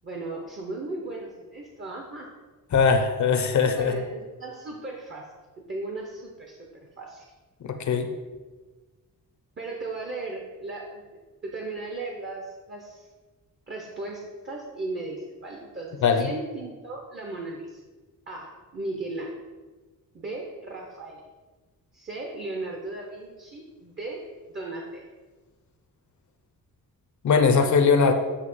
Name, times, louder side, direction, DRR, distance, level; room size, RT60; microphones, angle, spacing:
voice 1, 0.0-2.3 3.7-6.7 7.0-7.2 9.6-11.0 11.4-13.1 13.7-17.8 18.3-19.4 20.1-21.2 21.9-25.1, right 2 dB, 35° right, 0 dB, 0.8 m, -36 dB
voice 2, 2.7-4.0 7.6-8.1 16.0-16.3 27.2-28.1, left 5 dB, 55° left, 6 dB, 0.6 m, -20 dB
8.1 x 2.8 x 5.4 m, 1.3 s
wide cardioid pair, 150°, 35 cm